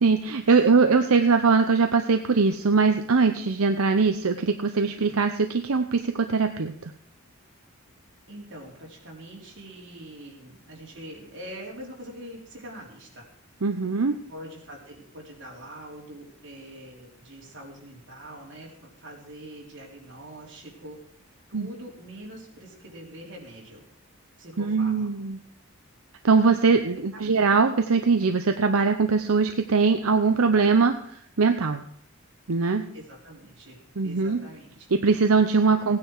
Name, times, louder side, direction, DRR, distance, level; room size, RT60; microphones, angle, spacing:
voice 1, 0.0-6.9 13.6-14.1 21.5-21.7 24.6-25.4 26.2-31.0 31.4-31.8 32.5-32.8 34.0-34.4 34.9-36.0, right 4 dB, 80° right, 6 dB, 0.8 m, -21 dB
voice 2, 8.3-13.3 14.3-21.0 21.5-23.8 24.4-25.1 32.9-33.8 34.0-34.9, right 1 dB, 55° right, -2 dB, 3.8 m, -43 dB
16.5 x 9.6 x 4.8 m, 0.65 s
head